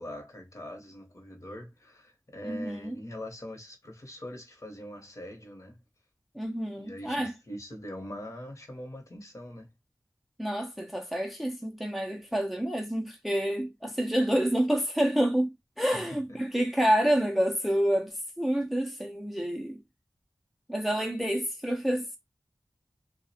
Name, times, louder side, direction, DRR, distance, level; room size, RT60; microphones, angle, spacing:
voice 1, 0.0-5.8 6.8-9.7 15.9-16.4, equal, 50° left, 0.8 m, -43 dB
voice 2, 2.4-3.0 6.4-7.3 10.4-19.8 20.7-22.2, equal, ahead, 0.4 m, -28 dB
2.4 x 2.0 x 2.6 m
wide cardioid pair, 75°, 7 cm